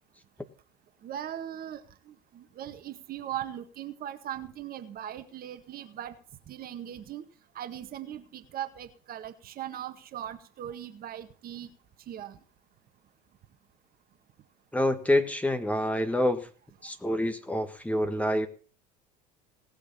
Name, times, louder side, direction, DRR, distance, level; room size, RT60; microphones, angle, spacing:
voice 1, 1.0-6.2 6.5-7.2 7.6-11.7 12.1-12.4, right 11 dB, 45° right, 8 dB, 1.8 m, -39 dB
voice 2, 14.7-16.5 16.8-18.5, left 1 dB, 5° left, 8 dB, 1.7 m, -27 dB
18.5 x 6.8 x 7.0 m, 0.40 s
hypercardioid pair, 75°, 21 cm